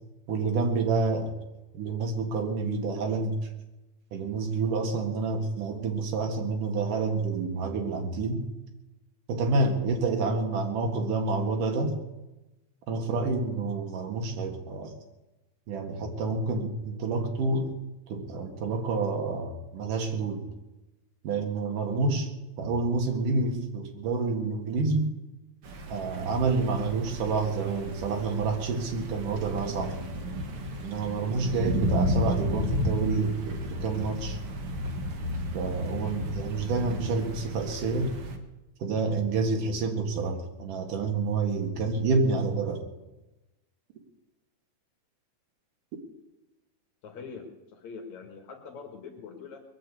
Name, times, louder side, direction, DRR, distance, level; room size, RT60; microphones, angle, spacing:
voice 1, 0.3-1.3 1.7-3.4 4.1-8.5 9.3-12.0 12.9-14.9 15.7-17.7 18.1-20.4 21.2-22.3 22.6-25.1 25.9-30.0 30.8-34.4 35.5-38.1 38.8-42.8, right 3 dB, 80° right, 2 dB, 3.4 m, -28 dB
sound 1, 25.6-38.4, equal, 50° right, 2.1 m, -33 dB
voice 2, 47.0-49.6, left 5 dB, 65° left, 3 dB, 3.0 m, -43 dB
21.0 x 7.8 x 8.2 m, 1.0 s
omnidirectional pair, 3.6 m